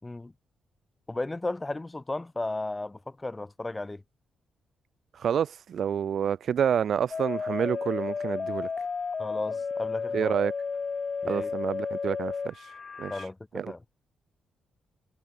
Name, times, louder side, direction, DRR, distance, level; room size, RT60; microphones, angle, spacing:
voice 1, 0.0-0.3 1.1-4.0 9.2-10.3 11.2-11.5 13.1-13.8, left 2 dB, 15° left, 5.8 m, -35 dB
voice 2, 5.1-8.7 10.1-10.5 11.3-13.3 13.5-13.7, right 8 dB, 65° right, 0.8 m, -28 dB
sound 1, 7.1-13.3, left 5 dB, 40° left, 1.9 m, -32 dB
cardioid pair, 90°, 0 cm